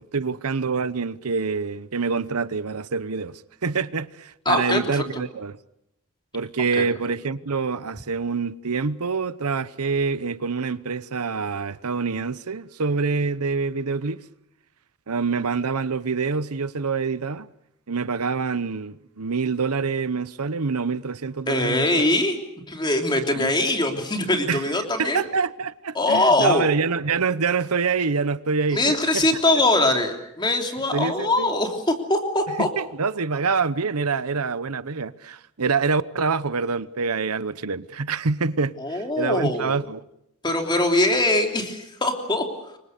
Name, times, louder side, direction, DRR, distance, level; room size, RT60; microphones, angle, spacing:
voice 1, 0.0-5.6 6.3-14.2 15.1-17.5 17.9-21.9 23.4-23.5 24.5-24.7 25.0-29.2 29.5-29.8 30.9-31.5 32.6-40.0, right 4 dB, 90° right, 0.9 m, -26 dB
voice 2, 4.4-5.2 6.8-6.9 21.5-22.4 22.7-25.2 25.9-26.7 28.7-32.7 38.8-39.8 40.4-42.5, left 2 dB, 20° left, 3.2 m, -22 dB
28.0 x 24.5 x 6.7 m
head